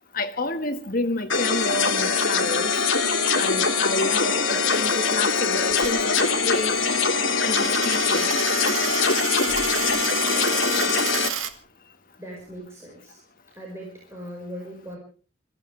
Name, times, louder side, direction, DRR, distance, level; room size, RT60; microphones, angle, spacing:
voice 1, 0.1-2.7 3.4-6.8 7.4-8.3, left 2 dB, 45° left, 1.6 m, -29 dB
sound 1, 1.3-11.3, left 4 dB, 65° left, 2.8 m, -23 dB
Coin (dropping), 5.7-11.5, right 8 dB, 75° right, 1.6 m, -31 dB
voice 2, 12.2-13.2 13.5-15.0, equal, 15° right, 5.1 m, -39 dB
26.5 x 15.5 x 3.4 m
head